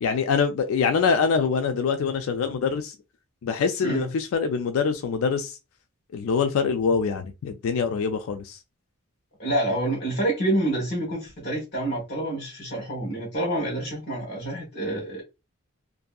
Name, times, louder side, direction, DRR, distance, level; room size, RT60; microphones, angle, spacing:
voice 1, 0.0-2.9 3.4-5.5 6.1-8.6, left 5 dB, 70° left, 0.3 m, -24 dB
voice 2, 9.4-15.2, right 1 dB, 50° left, 1.0 m, -27 dB
2.6 x 2.5 x 2.2 m
head